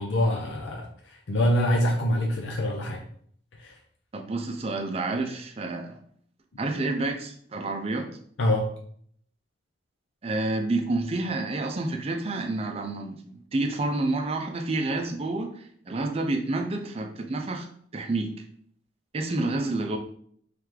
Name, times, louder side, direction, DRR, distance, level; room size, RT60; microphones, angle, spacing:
voice 1, 0.0-3.0 3.6-3.8 8.4-8.7, left 1 dB, 75° left, 1 dB, 0.5 m, -25 dB
voice 2, 4.1-6.0 6.6-8.1 10.2-17.7 17.9-18.3 19.1-20.0, right 2 dB, 35° right, 5 dB, 0.5 m, -29 dB
3.3 x 3.0 x 3.7 m, 0.62 s
head